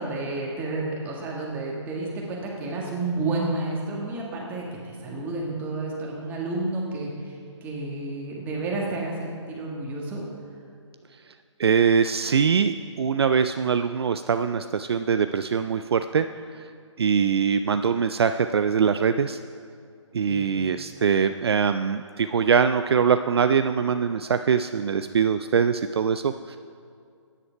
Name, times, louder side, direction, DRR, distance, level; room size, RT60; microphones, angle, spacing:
voice 1, 0.0-10.2 20.2-20.5, right 2 dB, 10° right, -3 dB, 1.8 m, -31 dB
voice 2, 11.6-16.3 16.5-16.7 17.0-19.4 20.1-26.6, right 6 dB, 55° right, 9 dB, 0.5 m, -23 dB
15.5 x 10.0 x 4.5 m, 2.3 s
hypercardioid pair, 155°, 16 cm